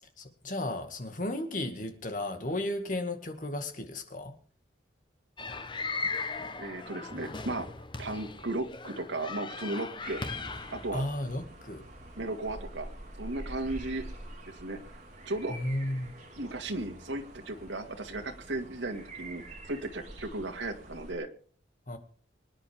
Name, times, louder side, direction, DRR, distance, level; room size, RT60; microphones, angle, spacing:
voice 1, 0.2-4.4 10.9-11.8 15.5-16.1 21.9-22.0, left 1 dB, 45° left, 2.1 m, -34 dB
sound 1, 5.4-10.9, left 4 dB, 25° left, 1.0 m, -38 dB
voice 2, 6.6-7.7 8.0-10.2 10.7-11.0 12.2-12.9 13.2-14.0 14.5-14.8 15.3-15.6 16.4-21.3, right 2 dB, 85° right, 2.2 m, -35 dB
sound 2, 10.0-21.1, right 1 dB, 40° right, 3.5 m, -46 dB
24.5 x 10.5 x 3.6 m
head